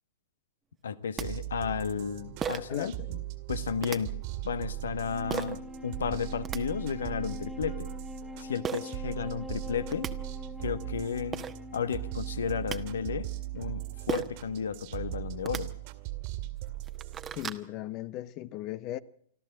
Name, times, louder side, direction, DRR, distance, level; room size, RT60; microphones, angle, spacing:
voice 1, 0.8-3.0 3.5-4.1 4.4-7.9 8.4-10.1 10.6-11.4 11.7-15.7, left 7 dB, 65° left, 1.2 m, -33 dB
sound 1, 0.8-0.9 1.2-1.3 2.4-2.8 3.8-4.0 5.3-5.6 6.2-6.6 8.6-8.8 9.6-9.7 9.9-10.1 11.0-11.1 11.3-11.5 12.4-12.8 14.1-14.4 15.3-15.6 16.3-16.4 16.7-17.6, right 7 dB, 20° right, 1.2 m, -34 dB
sound 2, 1.2-17.5, right 17 dB, 45° right, 2.0 m, -39 dB
voice 2, 2.7-3.2 17.3-19.0, left 14 dB, 35° left, 0.7 m, -38 dB
Wind instrument woodwind instrument, 4.9-14.4, left 2 dB, ahead, 1.7 m, -45 dB
26.0 x 13.5 x 7.5 m
figure-of-eight pair, 105°, 0 cm